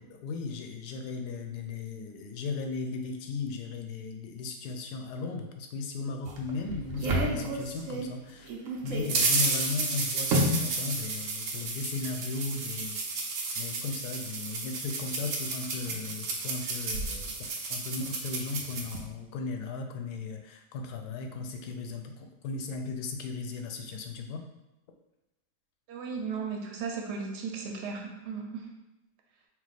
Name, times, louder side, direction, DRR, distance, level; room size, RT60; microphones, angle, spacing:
voice 1, 0.0-8.5 8.8-13.0 13.6-17.3 17.7-24.4, left 4 dB, 75° left, 4 dB, 1.1 m, -36 dB
sound 1, 6.3-8.1 8.5-19.0, right 2 dB, 65° right, 1.0 m, -31 dB
voice 2, 25.9-28.7, right 5 dB, 85° right, 1 dB, 1.3 m, -36 dB
4.6 x 2.1 x 4.0 m, 0.97 s
omnidirectional pair, 1.7 m